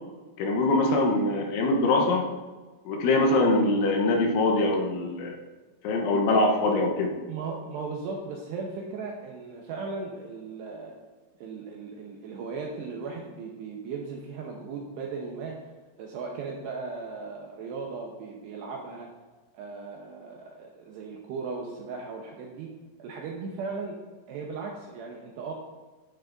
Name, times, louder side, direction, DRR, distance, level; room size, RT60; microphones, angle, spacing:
voice 1, 0.4-2.3 2.9-5.4 5.8-7.1, left 2 dB, 75° left, 2 dB, 3.1 m, -23 dB
voice 2, 7.3-10.9 11.4-15.6 16.0-19.1 19.5-22.7 23.0-24.0 24.3-25.5, right 4 dB, 80° right, -1 dB, 2.5 m, -37 dB
11.5 x 10.0 x 2.6 m, 1.3 s
omnidirectional pair, 5.8 m